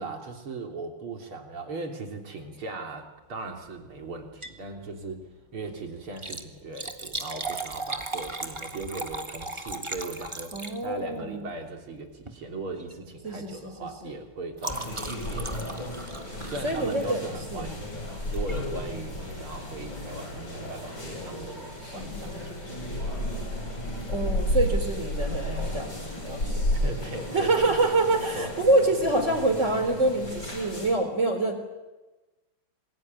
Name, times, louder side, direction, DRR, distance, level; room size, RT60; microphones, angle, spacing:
voice 1, 0.0-17.8 18.3-22.9 26.7-27.7 28.1-28.5, right 3 dB, 80° right, 3 dB, 4.2 m, -39 dB
Liquid, 4.2-4.7 5.0-5.1 6.0-11.2 12.2-12.4 12.8-13.0 13.3-17.4 18.3-18.6 19.1-19.2 19.4-19.5, right 2 dB, 15° right, 1.4 m, -37 dB
voice 2, 10.5-11.4 13.2-14.1 16.6-17.2 17.5-17.7 21.9-22.1 24.1-26.0 26.2-26.7 27.3-31.6, right 2 dB, 35° right, 7 dB, 4.3 m, -26 dB
sound 1, 14.7-30.9, left 1 dB, 60° left, 8.8 m, -33 dB
27.0 x 22.0 x 9.6 m, 1.2 s
omnidirectional pair, 2.3 m